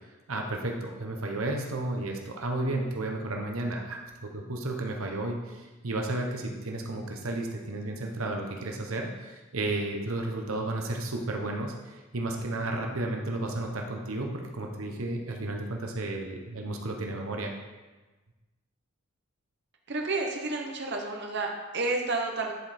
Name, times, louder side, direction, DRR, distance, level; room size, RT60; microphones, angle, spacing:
voice 1, 0.3-17.5, right 2 dB, 80° right, 2 dB, 1.0 m, -33 dB
voice 2, 19.9-22.5, right 3 dB, 55° right, 1 dB, 1.0 m, -30 dB
11.0 x 5.1 x 4.3 m, 1.2 s
head